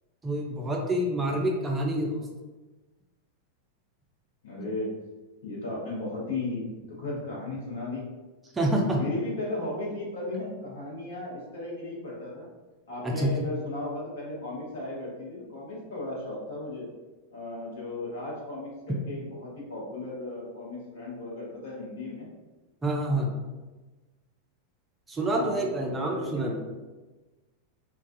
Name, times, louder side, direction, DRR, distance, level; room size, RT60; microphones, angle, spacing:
voice 1, 0.2-2.2 8.5-9.0 13.0-13.3 22.8-23.3 25.1-26.6, right 1 dB, 15° right, -1 dB, 0.4 m, -27 dB
voice 2, 4.4-5.0 5.4-8.0 9.0-12.5 12.9-16.9 17.3-22.3 25.3-26.6, left 2 dB, 60° left, -5 dB, 0.8 m, -35 dB
2.3 x 2.2 x 2.5 m, 1.2 s
figure-of-eight pair, 90°, 0 cm